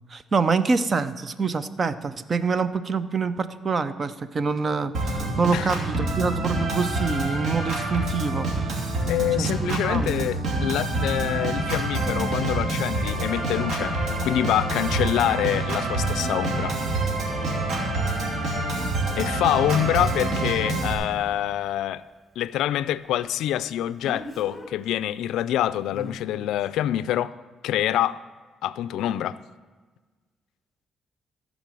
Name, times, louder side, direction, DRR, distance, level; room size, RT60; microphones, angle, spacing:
voice 1, 0.1-8.8 9.4-10.3, right 4 dB, 40° right, 0.6 m, -26 dB
Organ, 4.9-20.9, right 2 dB, 65° right, 2.7 m, -27 dB
voice 2, 9.1-14.0 14.2-16.8 19.2-22.0 22.4-27.3 27.6-28.2 28.6-29.4, left 12 dB, 85° left, 0.3 m, -26 dB
Speech, 18.7-18.8 24.0-24.7 25.9-26.2, left 2 dB, 20° left, 1.8 m, -38 dB
15.0 x 5.3 x 7.5 m
cardioid pair, 90°, 0 cm